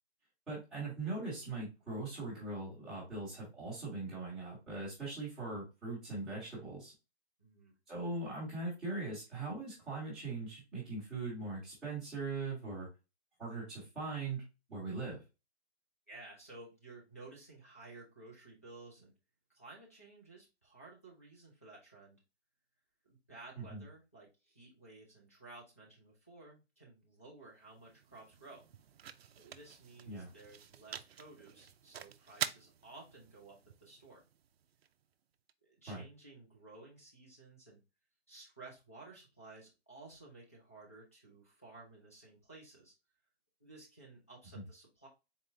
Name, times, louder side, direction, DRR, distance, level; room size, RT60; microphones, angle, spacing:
voice 1, 0.5-6.9 7.9-12.9 13.4-14.4 14.7-15.2 23.7-23.8 30.1-30.3 35.9-36.0 44.5-44.6, right 3 dB, ahead, -12 dB, 0.9 m, -40 dB
voice 2, 7.4-7.7 16.1-19.1 19.5-22.2 23.0-28.7 29.3-34.2 35.6-37.8 38.3-42.9 43.6-45.1, right 2 dB, 15° left, -5 dB, 0.4 m, -55 dB
sound 1, 27.4-35.5, right 9 dB, 65° right, 0.4 m, -47 dB
4.1 x 3.3 x 2.6 m, 0.27 s
hypercardioid pair, 170°, 33 cm